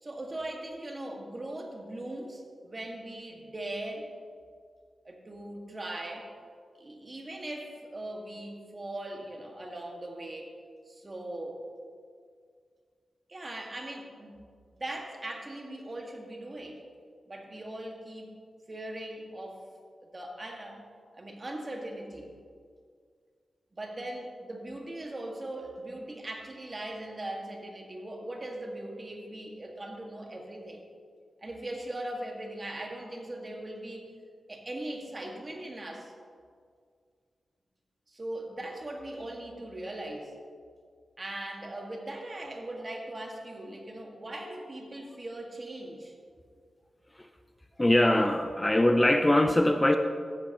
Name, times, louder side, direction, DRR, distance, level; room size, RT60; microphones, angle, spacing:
voice 1, 0.0-4.1 5.1-6.3 6.7-10.5 10.9-11.6 13.3-14.4 14.7-16.8 17.3-18.3 18.7-19.7 20.0-20.8 21.1-22.3 23.7-30.8 31.4-34.1 34.5-36.1 38.1-40.3 41.2-46.1, right 1 dB, 40° right, 1 dB, 1.7 m, -40 dB
voice 2, 47.8-50.0, left 1 dB, 20° left, 7 dB, 0.5 m, -22 dB
14.5 x 8.0 x 2.9 m, 2.1 s
cardioid pair, 45°, 0 cm